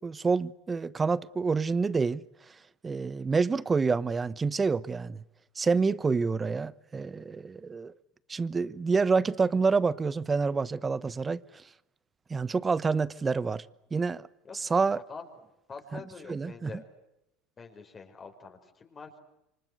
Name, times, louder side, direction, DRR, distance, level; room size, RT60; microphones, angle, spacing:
voice 1, 0.0-2.2 2.8-5.2 5.5-8.0 8.3-11.6 12.3-13.6 13.9-14.3 14.5-15.0 15.9-16.0 16.3-16.7, right 4 dB, 20° right, 1.1 m, -27 dB
voice 2, 14.9-15.3 15.7-16.9 17.6-19.2, left 5 dB, 30° left, 5.4 m, -45 dB
28.0 x 25.0 x 8.1 m
hypercardioid pair, 90°, 0 cm